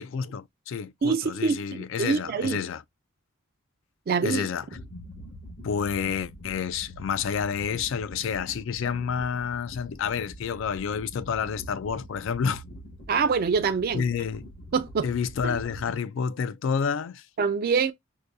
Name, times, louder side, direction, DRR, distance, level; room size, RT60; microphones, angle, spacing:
voice 1, 0.0-2.8 4.2-4.6 5.6-12.6 13.9-14.5 15.0-17.2, left 6 dB, 70° left, 0.3 m, -29 dB
voice 2, 1.0-2.6 4.1-4.5 13.1-14.0 14.7-15.1 15.4-15.6 17.4-17.9, right 5 dB, 50° right, 0.4 m, -25 dB
sound 1, 4.7-16.0, equal, 85° left, 1.7 m, -44 dB
4.7 x 2.2 x 2.6 m
head